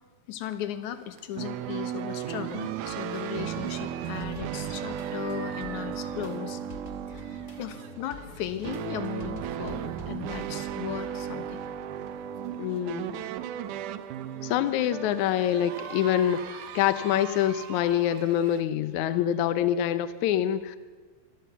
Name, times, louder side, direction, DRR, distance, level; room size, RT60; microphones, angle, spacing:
voice 1, 0.3-6.6 7.1-11.6, left 11 dB, 65° left, 10 dB, 2.3 m, -37 dB
sound 1, 0.8-18.6, right 8 dB, 90° right, 3.3 m, -47 dB
sound 2, 1.4-16.1, right 10 dB, 70° right, 2.0 m, -36 dB
sound 3, 3.9-11.3 11.9-12.8 13.4-13.5 13.8-14.8, left 2 dB, 25° left, 2.2 m, -47 dB
voice 2, 12.6-13.3 14.4-20.8, left 11 dB, 80° left, 12 dB, 1.7 m, -26 dB
25.0 x 18.0 x 7.0 m, 1.4 s
omnidirectional pair, 4.3 m